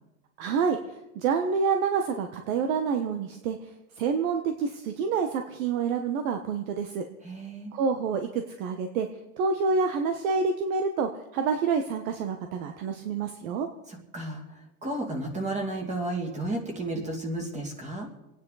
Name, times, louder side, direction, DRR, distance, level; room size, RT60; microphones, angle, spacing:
voice 1, 0.4-0.8 1.1-3.7 4.0-7.0 7.7-9.1 9.4-13.7, right 5 dB, 65° right, 6 dB, 1.4 m, -27 dB
voice 2, 7.2-7.7 13.9-18.1, right 2 dB, 15° right, 2 dB, 2.5 m, -33 dB
28.0 x 9.6 x 4.1 m, 0.98 s
supercardioid pair, 150°, 43 cm